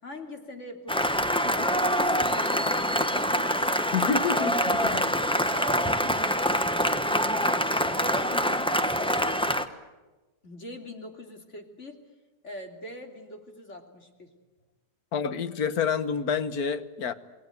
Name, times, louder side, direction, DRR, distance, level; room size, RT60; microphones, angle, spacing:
voice 1, 0.0-4.0 5.5-7.3 7.9-9.7 10.4-12.0 12.4-14.3, left 1 dB, 45° left, 4 dB, 3.4 m, -42 dB
Cheering / Applause, 0.9-9.7, equal, 5° left, 1.1 m, -25 dB
voice 2, 3.9-5.1 15.1-17.1, left 6 dB, 65° left, 12 dB, 1.7 m, -28 dB
28.5 x 20.0 x 9.4 m, 1.2 s
omnidirectional pair, 1.8 m